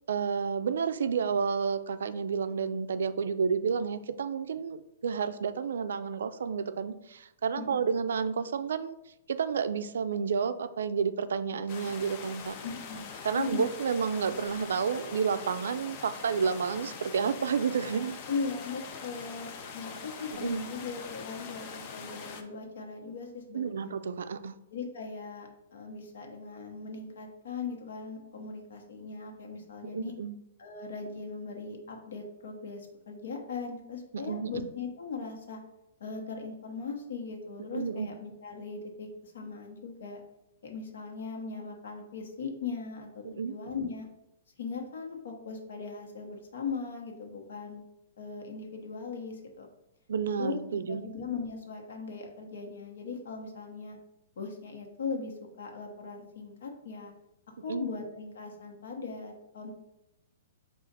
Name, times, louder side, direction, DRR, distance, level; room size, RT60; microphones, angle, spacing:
voice 1, 0.1-9.0 9.3-12.6 13.2-18.2 20.4-20.7 23.5-24.5 29.8-30.4 34.1-34.7 37.7-38.1 43.2-43.5 50.1-51.1 57.7-57.8, right 6 dB, 80° right, 11 dB, 0.3 m, -30 dB
sound 1, 11.7-22.4, left 5 dB, 35° left, 0.5 m, -43 dB
voice 2, 12.6-13.7 18.3-23.9 24.7-30.1 30.6-35.6 36.0-40.2 40.6-44.0 44.6-47.8 48.2-49.7 50.4-50.6 50.9-54.0 54.4-57.1 57.6-59.7, left 4 dB, 75° left, 2 dB, 1.0 m, -39 dB
4.9 x 2.4 x 4.0 m, 0.88 s
hypercardioid pair, 160°, 0 cm